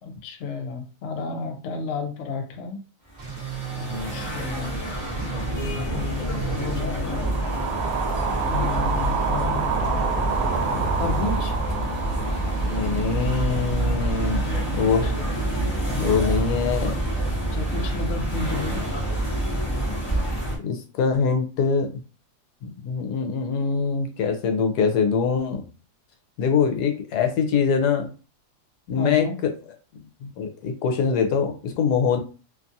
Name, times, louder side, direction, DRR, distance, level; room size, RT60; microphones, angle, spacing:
voice 1, 0.0-2.8 3.8-4.8 5.6-7.5 8.5-11.5 15.0-15.1 17.5-18.8 28.9-29.4, left 4 dB, 60° left, 4 dB, 0.8 m, -32 dB
sound 1, 3.1-20.6, right 1 dB, 20° left, 0.8 m, -27 dB
sound 2, 3.2-6.8, right 8 dB, 45° right, 0.6 m, -35 dB
sound 3, 7.0-15.3, right 5 dB, 70° right, 1.0 m, -29 dB
voice 2, 12.4-15.1 16.0-17.0 20.6-21.9 22.6-25.7 26.4-28.1 28.9-29.5 30.2-32.2, left 5 dB, 80° left, 5 dB, 1.1 m, -24 dB
2.8 x 2.3 x 2.6 m, 0.35 s
omnidirectional pair, 1.7 m